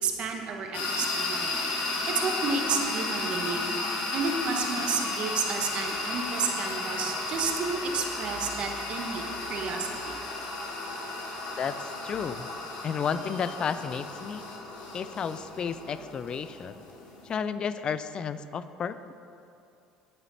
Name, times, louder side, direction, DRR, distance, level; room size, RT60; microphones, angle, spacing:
voice 1, 0.0-1.5 2.1-3.6 4.1-10.2, right 5 dB, 55° right, 3 dB, 1.3 m, -31 dB
sound 1, 0.7-17.3, left 2 dB, 70° left, 2.0 m, -34 dB
voice 2, 11.6-12.5 12.8-14.4 14.9-16.8 17.2-19.1, left 7 dB, 40° left, 13 dB, 0.4 m, -32 dB
10.0 x 9.0 x 4.2 m, 2.7 s
supercardioid pair, 80°, 2 cm